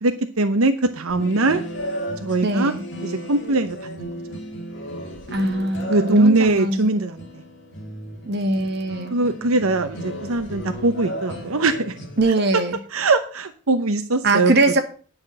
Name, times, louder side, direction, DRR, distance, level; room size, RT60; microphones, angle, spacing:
voice 1, 0.0-1.6 2.2-2.7 3.0-4.4 5.9-7.2 9.1-11.9 12.9-14.5, right 2 dB, 90° right, 7 dB, 0.9 m, -21 dB
sound 1, 1.1-12.2, equal, 55° left, 3.1 m, -34 dB
voice 2, 2.4-2.8 5.3-6.9 8.3-9.1 12.2-12.8 14.2-14.8, right 2 dB, 50° right, 4 dB, 2.0 m, -21 dB
9.8 x 6.1 x 7.9 m, 0.40 s
head